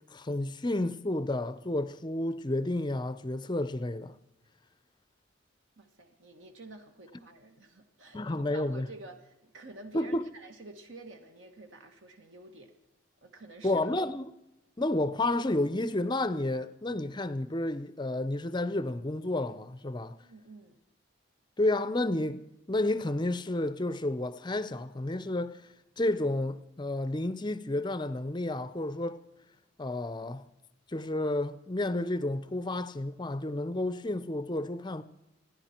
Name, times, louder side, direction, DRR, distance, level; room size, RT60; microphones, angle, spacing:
voice 1, 0.1-4.1 8.1-8.9 9.9-10.3 13.6-14.3 14.8-20.2 21.6-25.6 26.0-29.2 29.8-30.5 30.9-35.0, left 1 dB, 20° left, 0.6 m, -31 dB
voice 2, 5.8-12.7 13.2-13.9 20.2-20.8, right 2 dB, 65° right, 1.5 m, -50 dB
28.0 x 10.5 x 4.4 m
head